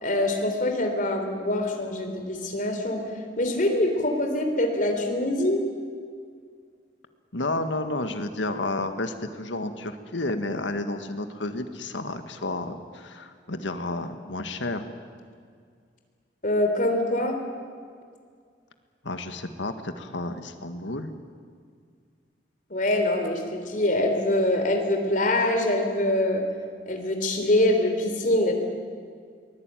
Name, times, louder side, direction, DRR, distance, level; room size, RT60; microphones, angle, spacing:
voice 1, 0.0-3.0 3.4-5.6 16.4-17.4 22.7-26.4 26.9-28.5, left 1 dB, 45° left, 4 dB, 3.6 m, -24 dB
voice 2, 7.3-14.8 19.0-21.1, left 2 dB, 85° left, 8 dB, 1.8 m, -31 dB
23.0 x 20.0 x 9.3 m, 2.1 s
head